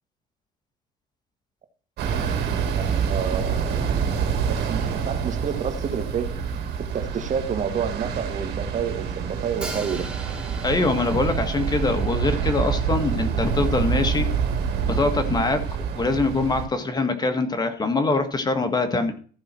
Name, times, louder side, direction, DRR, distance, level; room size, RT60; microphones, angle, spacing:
sound 1, 2.0-16.7, right 6 dB, 75° right, 2.7 m, -26 dB
voice 1, 2.8-4.1 4.5-6.3 6.8-10.1, right 7 dB, 45° right, 1.7 m, -29 dB
Hi-hat, 9.6-13.6, right 3 dB, 5° right, 4.5 m, -40 dB
voice 2, 10.6-14.3 14.8-15.6 16.0-19.1, left 3 dB, 25° left, 1.7 m, -23 dB
14.5 x 5.6 x 4.4 m
cardioid pair, 110°, 17 cm